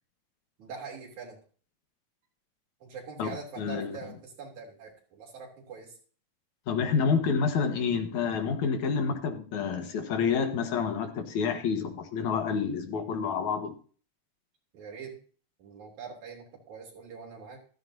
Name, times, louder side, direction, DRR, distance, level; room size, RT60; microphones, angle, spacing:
voice 1, 0.6-1.4 2.8-5.9 14.7-15.2 15.6-17.6, right 5 dB, 80° right, -1 dB, 4.5 m, -43 dB
voice 2, 3.2-4.0 6.7-13.7, left 6 dB, 80° left, 5 dB, 2.8 m, -28 dB
14.5 x 13.5 x 2.8 m, 0.41 s
omnidirectional pair, 3.3 m